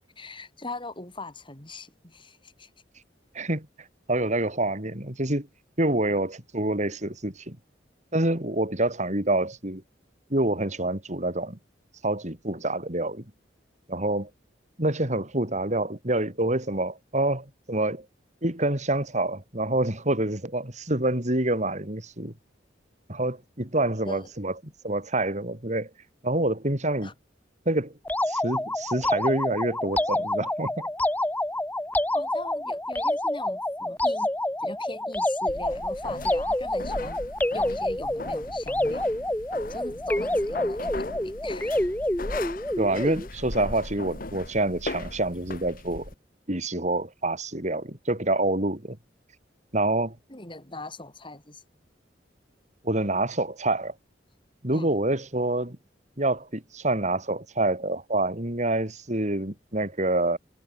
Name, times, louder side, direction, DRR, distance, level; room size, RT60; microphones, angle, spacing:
voice 1, 0.2-2.7 23.9-24.3 27.0-27.1 32.1-34.3 34.6-37.2 37.5-39.1 39.7-41.8 50.3-51.6 54.7-54.9, left 2 dB, 25° left, 6.0 m, -40 dB
voice 2, 3.3-3.7 4.1-5.5 5.8-7.6 8.1-9.8 10.3-11.6 12.0-13.2 13.9-14.3 14.8-18.1 18.4-22.3 23.1-24.5 24.8-25.9 26.2-27.1 27.7-27.9 28.3-30.9 42.8-46.1 46.5-49.0 49.7-50.2 52.8-53.9 54.6-55.8 56.2-60.4, right 2 dB, 40° right, 4.4 m, -27 dB
sound 1, 28.1-43.3, left 1 dB, 10° left, 1.3 m, -28 dB
sound 2, 35.5-46.1, left 2 dB, 50° left, 1.9 m, -38 dB
head